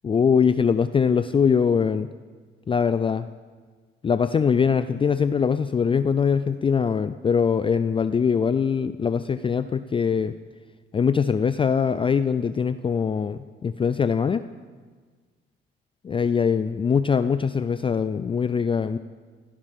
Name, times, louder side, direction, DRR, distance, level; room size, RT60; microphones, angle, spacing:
voice 1, 0.0-2.1 2.7-3.3 4.0-10.3 10.9-14.4 16.0-19.0, left 6 dB, 25° left, 12 dB, 0.4 m, -22 dB
16.5 x 15.5 x 3.6 m, 1.5 s
cardioid pair, 90°, 20 cm